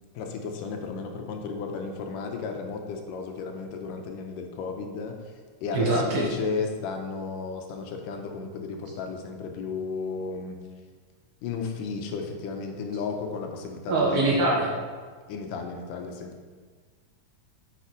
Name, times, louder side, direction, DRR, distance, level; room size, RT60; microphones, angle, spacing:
voice 1, 0.2-5.1 5.6-10.6 11.4-14.6 15.3-16.3, left 5 dB, 85° left, 4 dB, 2.4 m, -33 dB
voice 2, 5.7-6.3 13.9-14.7, right 2 dB, 60° right, -4 dB, 2.1 m, -23 dB
7.0 x 5.9 x 4.8 m, 1.5 s
omnidirectional pair, 3.8 m